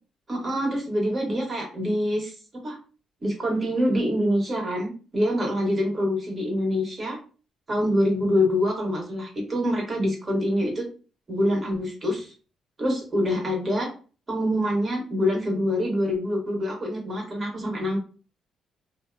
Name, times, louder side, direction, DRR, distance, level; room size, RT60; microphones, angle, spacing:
voice 1, 0.3-2.3 2.6-2.8 3.2-7.2 7.7-10.9 11.3-12.3 12.8-13.9 14.3-18.0, equal, 35° right, 0 dB, 1.1 m, -25 dB
2.7 x 2.1 x 2.5 m, 0.37 s
cardioid pair, 90°, 0 cm